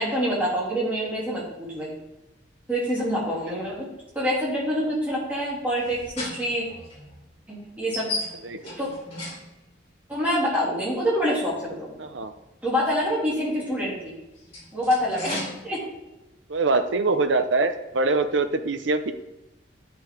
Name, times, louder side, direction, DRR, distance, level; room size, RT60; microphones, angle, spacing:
voice 1, 0.0-1.9 2.7-3.9 4.1-6.6 7.5-8.1 8.8-8.9 10.1-12.0 12.6-14.1 14.7-15.8, equal, 10° right, -7 dB, 3.1 m, -26 dB
sound 1, 5.6-9.9 11.2-11.3 14.1-15.7, left 2 dB, 30° left, 3.2 m, -36 dB
voice 2, 12.0-12.3 16.5-19.1, right 3 dB, 75° right, 9 dB, 0.7 m, -23 dB
11.0 x 6.0 x 3.8 m, 0.99 s
head